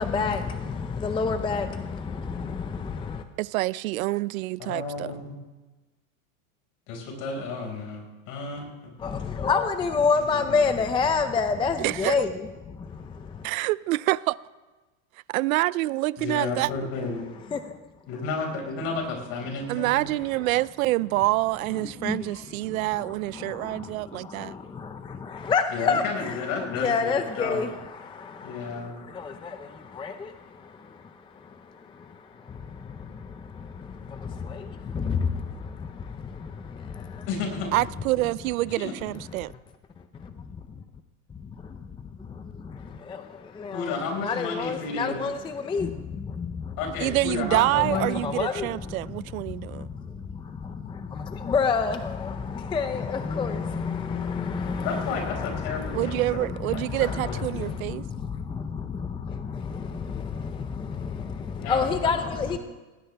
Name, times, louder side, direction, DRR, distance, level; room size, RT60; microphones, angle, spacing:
voice 1, 0.0-3.2 9.0-13.5 17.5-17.8 21.7-37.3 39.3-39.4 40.1-40.8 41.3-46.8 47.7-62.6, left 5 dB, 10° left, 0.5 m, -30 dB
voice 2, 3.4-5.1 11.8-12.2 13.4-14.4 15.3-16.7 19.7-24.5 37.7-39.5 47.0-49.9 55.9-58.0, right 18 dB, 90° right, 0.6 m, -26 dB
voice 3, 4.6-5.3 6.9-8.9 10.3-10.7 16.2-17.2 18.1-20.1 25.7-26.9 27.3-27.6 28.4-29.0 37.3-37.7 38.7-38.9 43.7-45.2 46.8-48.2 54.8-57.6 61.6-62.6, left 4 dB, 55° left, 5.2 m, -32 dB
19.0 x 18.5 x 3.4 m
supercardioid pair, 135°, 40 cm